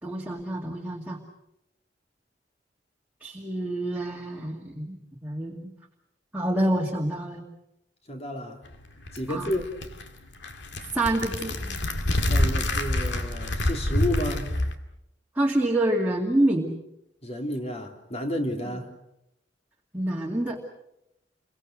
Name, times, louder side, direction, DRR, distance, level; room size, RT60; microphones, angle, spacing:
voice 1, 0.0-1.2 3.2-5.7 6.3-7.4 9.3-9.5 10.9-11.8 15.4-16.7 18.7-18.8 19.9-20.6, right 1 dB, 10° right, -1 dB, 2.4 m, -27 dB
voice 2, 8.1-8.6 9.1-9.7 12.3-14.5 17.2-18.9, left 1 dB, 35° left, 3 dB, 3.5 m, -31 dB
sound 1, 8.7-14.7, left 1 dB, 75° left, 2.2 m, -27 dB
29.0 x 24.0 x 6.4 m, 0.83 s
head